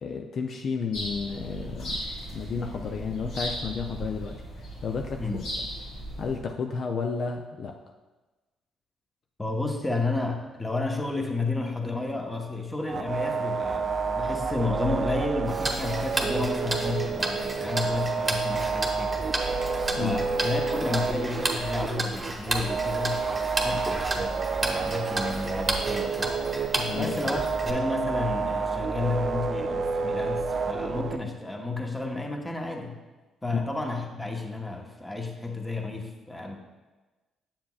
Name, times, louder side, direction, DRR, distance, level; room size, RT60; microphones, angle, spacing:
voice 1, 0.0-2.0 2.3-5.4 6.2-7.8 19.9-20.2 26.8-27.1 33.5-33.6, left 5 dB, 60° left, 3 dB, 0.4 m, -32 dB
sound 1, 0.9-6.4, equal, 80° left, 2.1 m, -36 dB
voice 2, 9.4-19.2 20.0-23.2 23.6-26.4 26.9-33.0 33.4-36.6, left 3 dB, 15° left, 2 dB, 1.1 m, -31 dB
sound 2, 12.9-31.2, right 5 dB, 50° right, 0.4 m, -29 dB
Tick-tock, 15.5-27.7, right 2 dB, 25° right, 1.1 m, -33 dB
7.3 x 7.1 x 2.4 m, 1.2 s
supercardioid pair, 55°, 0 cm